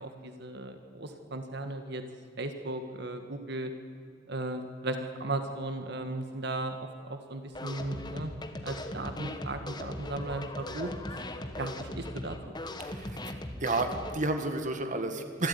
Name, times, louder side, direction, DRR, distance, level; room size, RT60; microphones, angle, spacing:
voice 1, 0.0-2.0 2.4-3.7 4.3-8.3 8.6-10.9 11.6-12.6, right 2 dB, 60° right, 7 dB, 1.7 m, -36 dB
sound 1, 7.5-14.2, left 1 dB, 25° left, 1.5 m, -39 dB
voice 2, 12.8-13.4 13.6-15.5, right 2 dB, 40° right, 7 dB, 1.8 m, -31 dB
26.5 x 13.5 x 9.7 m, 2.2 s
head